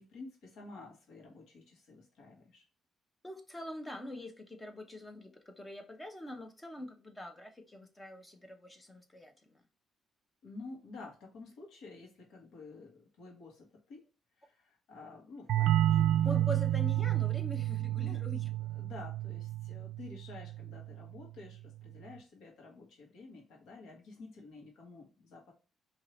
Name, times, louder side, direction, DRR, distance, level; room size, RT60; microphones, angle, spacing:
voice 1, 0.0-2.6 10.4-14.1 14.4-16.4 17.9-18.2 18.7-25.5, left 3 dB, 75° left, 1.4 m, -50 dB
voice 2, 3.2-9.6 16.2-18.5, left 1 dB, 15° left, 0.7 m, -44 dB
sound 1, 15.5-20.9, right 13 dB, 75° right, 0.3 m, -30 dB
4.6 x 2.8 x 3.0 m
cardioid pair, 155°, 0 cm